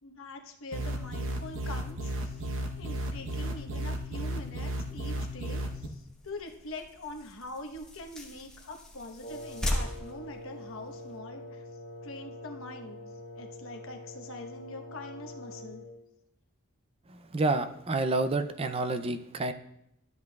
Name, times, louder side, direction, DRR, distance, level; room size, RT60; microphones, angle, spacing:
voice 1, 0.0-2.5 2.8-11.6 12.0-13.0 13.4-15.8, left 2 dB, 70° left, 4 dB, 1.1 m, -44 dB
sound 1, 0.7-5.9, right 1 dB, 65° right, 1.0 m, -34 dB
sound 2, 1.1-11.2, left 1 dB, 5° left, 1.0 m, -41 dB
Wind instrument woodwind instrument, 9.2-16.0, left 1 dB, 35° left, 0.8 m, -45 dB
voice 2, 17.1-19.5, right 2 dB, 30° right, 9 dB, 0.4 m, -29 dB
13.0 x 8.1 x 2.3 m, 0.78 s
head